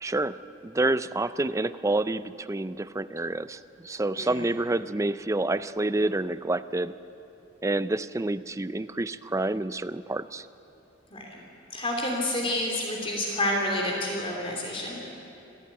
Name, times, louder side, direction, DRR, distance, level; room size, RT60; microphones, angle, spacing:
voice 1, 0.0-0.4 0.6-6.9 7.6-10.5, right 2 dB, 15° right, 13 dB, 0.5 m, -28 dB
voice 2, 11.1-11.4 11.7-15.0, left 1 dB, 30° left, 0 dB, 2.9 m, -29 dB
26.0 x 15.0 x 9.3 m, 3.0 s
head